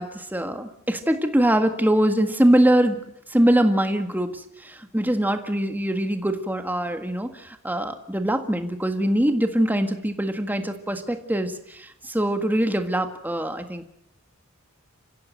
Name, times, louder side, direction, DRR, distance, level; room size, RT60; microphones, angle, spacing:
voice 1, 0.0-3.0 3.3-13.8, right 1 dB, 10° right, 7 dB, 1.7 m, -23 dB
29.0 x 16.0 x 7.8 m, 0.78 s
head